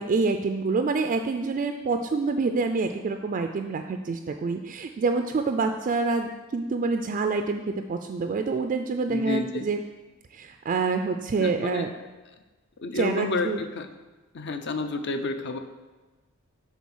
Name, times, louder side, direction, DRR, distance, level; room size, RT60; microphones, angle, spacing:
voice 1, 0.0-9.8 10.3-11.9 12.9-13.6, right 4 dB, 40° right, 6 dB, 0.3 m, -27 dB
voice 2, 9.1-9.7 11.4-11.9 12.8-13.9 14.3-15.6, left 3 dB, 55° left, 7 dB, 0.6 m, -30 dB
7.1 x 3.9 x 6.2 m, 1.2 s
head